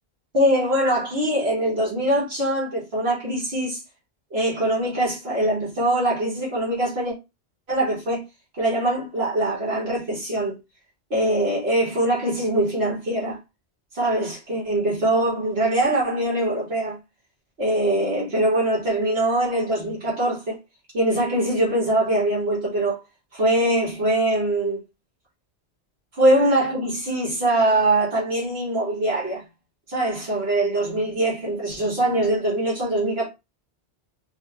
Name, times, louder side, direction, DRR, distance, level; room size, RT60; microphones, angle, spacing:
voice 1, 0.3-3.8 4.3-7.1 7.7-8.2 8.6-10.6 11.1-13.4 13.9-17.0 17.6-20.6 20.9-23.0 23.3-24.8 26.1-29.4 29.9-33.3, right 1 dB, 70° right, 1.9 m, -22 dB
4.7 x 2.3 x 3.0 m
omnidirectional pair, 1.1 m